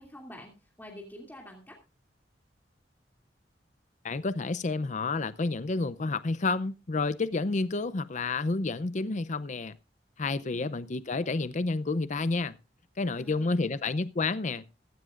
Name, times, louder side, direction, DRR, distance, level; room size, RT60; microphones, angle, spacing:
voice 1, 0.0-1.8 13.1-13.7, equal, 10° left, 2.7 m, -48 dB
voice 2, 4.0-9.8 10.2-12.6 13.0-14.7, left 3 dB, 45° left, 0.6 m, -30 dB
15.5 x 15.0 x 2.5 m
head